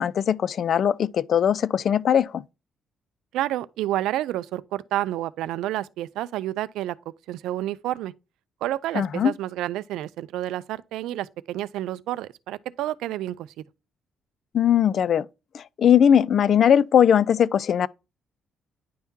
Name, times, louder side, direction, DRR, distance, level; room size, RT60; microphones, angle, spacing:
voice 1, 0.0-2.4 9.0-9.3 14.5-15.3 15.5-17.9, left 9 dB, 60° left, 0.3 m, -20 dB
voice 2, 3.3-7.0 7.3-8.1 8.6-13.5, right 14 dB, 90° right, 0.3 m, -29 dB
10.0 x 3.6 x 2.7 m
cardioid pair, 90°, 0 cm